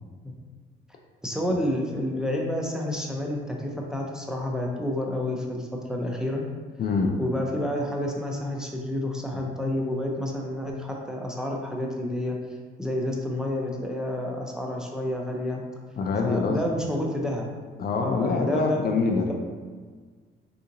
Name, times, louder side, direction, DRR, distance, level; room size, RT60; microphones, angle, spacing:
voice 1, 1.2-6.4 7.2-12.4 12.8-15.6 16.2-17.5 18.0-18.8 19.3-19.4, left 1 dB, 5° right, -1 dB, 0.5 m, -29 dB
voice 2, 6.8-7.2 16.0-16.6 17.8-19.4, left 4 dB, 50° left, 3 dB, 0.4 m, -25 dB
3.6 x 2.9 x 2.5 m, 1.6 s
cardioid pair, 90°, 20 cm